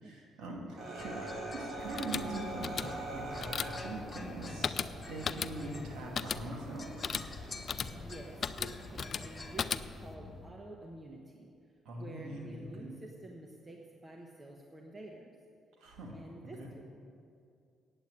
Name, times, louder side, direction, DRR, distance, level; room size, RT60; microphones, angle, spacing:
voice 1, 0.0-4.8 5.1-7.1 11.8-12.9 15.8-16.1 16.6-16.7, right 2 dB, 80° right, 0 dB, 2.3 m, -42 dB
sound 1, 0.8-9.9, right 2 dB, 60° right, 2.0 m, -45 dB
sound 2, 1.0-10.5, left 3 dB, 30° left, 1.0 m, -48 dB
sound 3, 1.8-10.2, left 6 dB, 50° left, 0.4 m, -38 dB
voice 2, 7.8-11.5 12.0-15.3 16.1-16.8, right 1 dB, 25° right, 1 dB, 1.1 m, -49 dB
9.1 x 8.1 x 8.5 m, 2.4 s
cardioid pair, 90°, 0 cm